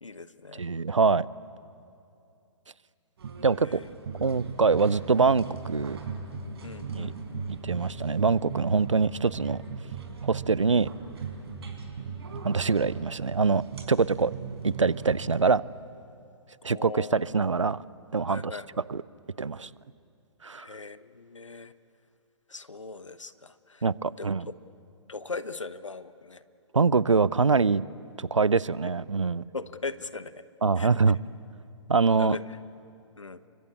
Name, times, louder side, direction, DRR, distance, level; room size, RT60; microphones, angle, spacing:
voice 1, 0.0-0.6 3.6-3.9 6.6-7.1 16.7-17.4 18.3-18.8 20.6-21.7 22.5-23.8 24.2-24.5 25.1-26.4 29.5-30.4 30.8-30.9 32.2-32.6 33.2-33.4, left 3 dB, 85° left, 14 dB, 1.1 m, -39 dB
voice 2, 0.6-1.3 3.4-3.8 4.2-6.0 6.9-7.1 7.5-9.6 10.2-10.9 12.4-14.3 14.6-15.6 16.6-17.8 18.1-18.5 18.9-19.0 19.4-19.7 20.4-20.7 23.8-24.5 26.7-27.8 28.2-29.4 30.6-31.2 31.9-32.4, right 4 dB, 85° right, 21 dB, 0.6 m, -24 dB
sound 1, 3.2-15.4, right 5 dB, 55° right, 5.2 m, -38 dB
29.0 x 24.0 x 8.4 m, 2.6 s
figure-of-eight pair, 125°, 16 cm